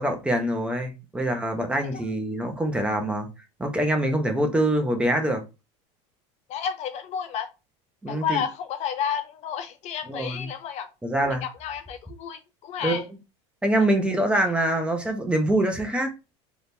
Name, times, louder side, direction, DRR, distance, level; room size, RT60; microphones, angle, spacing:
voice 1, 0.0-3.3 3.6-5.4 8.0-8.4 10.1-10.5 11.0-11.4 12.8-13.0 13.6-16.1, right 1 dB, 5° right, 1.1 m, -24 dB
voice 2, 6.5-7.5 8.1-10.9 11.2-13.0, left 8 dB, 50° left, 0.6 m, -31 dB
3.9 x 3.4 x 2.8 m
supercardioid pair, 120°, 15 cm